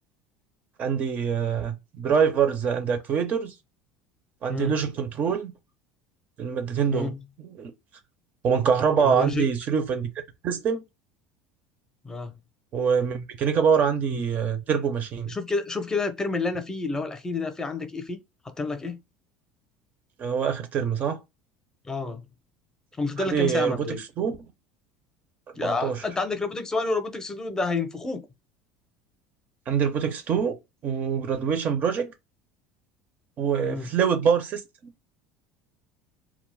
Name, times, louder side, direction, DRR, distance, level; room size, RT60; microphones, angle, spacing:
voice 1, 0.8-3.5 4.4-5.5 6.4-7.7 8.4-10.1 10.4-10.8 12.7-15.3 20.2-21.2 23.2-24.4 25.6-26.0 29.7-30.6 30.8-32.1 33.4-34.9, right 7 dB, 45° right, 0.5 m, -25 dB
voice 2, 9.0-9.4 12.0-12.3 15.3-18.2 18.4-19.0 21.9-22.2 23.0-24.0 25.6-28.3 33.6-33.9, left 3 dB, 15° left, 0.6 m, -29 dB
2.3 x 2.0 x 3.2 m
hypercardioid pair, 90°, 4 cm